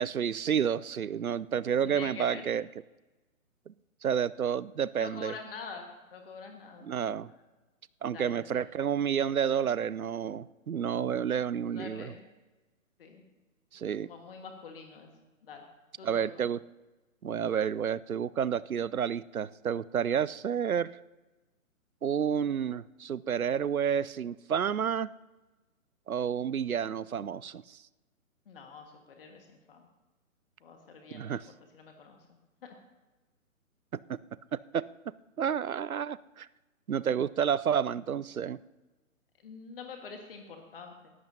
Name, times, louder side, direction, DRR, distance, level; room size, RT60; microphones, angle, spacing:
voice 1, 0.0-2.6 3.7-3.8 4.0-5.3 6.8-7.3 8.0-12.1 13.7-14.1 16.0-16.6 17.2-21.0 22.0-25.1 26.1-27.8 31.1-31.4 34.1-34.2 34.5-36.5 36.9-38.6, right 8 dB, 80° right, 19 dB, 0.6 m, -30 dB
voice 2, 1.8-2.4 5.0-6.9 7.3-7.4 8.1-8.6 11.7-12.3 13.0-13.2 14.0-15.1 15.4-15.6 16.0-16.4 28.4-29.9 30.6-32.2 32.6-32.8 39.4-41.1, left 5 dB, 40° left, 4 dB, 1.6 m, -46 dB
18.5 x 14.0 x 2.8 m, 1.2 s
figure-of-eight pair, 135°, 42 cm